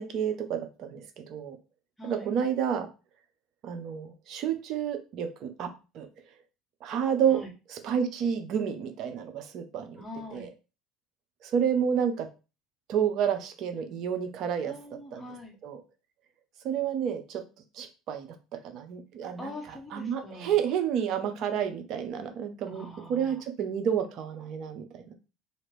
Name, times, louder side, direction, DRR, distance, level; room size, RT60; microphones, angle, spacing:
voice 1, 0.0-1.6 2.0-2.9 3.6-5.7 5.9-6.1 6.8-7.4 7.7-10.0 10.3-10.5 11.4-12.3 12.9-14.7 15.1-15.3 15.6-15.8 16.6-17.4 17.7-18.3 18.6-19.5 19.9-25.1, right 8 dB, 60° right, 7 dB, 0.6 m, -30 dB
voice 2, 2.0-2.3 7.3-7.5 9.9-10.5 14.6-15.6 19.4-20.6 22.7-23.4, left 1 dB, 5° left, -1 dB, 1.2 m, -43 dB
2.8 x 2.5 x 3.2 m, 0.31 s
hypercardioid pair, 75°, 0 cm